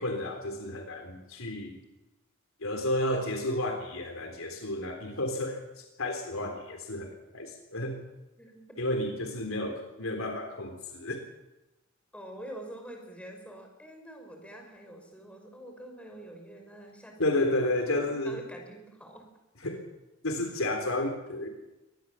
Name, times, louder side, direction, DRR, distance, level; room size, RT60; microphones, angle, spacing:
voice 1, 0.0-1.8 2.6-8.0 8.8-11.2 17.2-18.3 19.6-19.9 20.2-21.5, left 1 dB, 80° left, 4 dB, 3.6 m, -31 dB
voice 2, 8.4-8.7 12.1-19.3, right 1 dB, 5° left, 3 dB, 5.5 m, -46 dB
23.5 x 19.5 x 7.4 m, 0.99 s
head